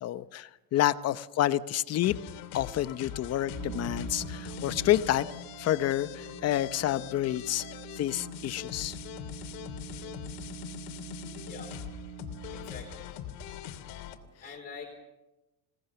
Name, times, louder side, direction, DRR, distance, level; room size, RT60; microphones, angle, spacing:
voice 1, 0.0-2.1 2.5-5.3 5.6-7.7 8.0-9.0, left 13 dB, 45° left, 14 dB, 0.8 m, -28 dB
sound 1, 2.0-14.2, left 10 dB, 70° left, 2.7 m, -42 dB
sound 2, 3.2-13.0, right 8 dB, 50° right, 1.4 m, -45 dB
voice 2, 12.5-13.1 14.4-14.9, left 5 dB, 25° left, 1 dB, 3.8 m, -45 dB
27.0 x 18.0 x 7.0 m, 1.0 s
cardioid pair, 135°, 36 cm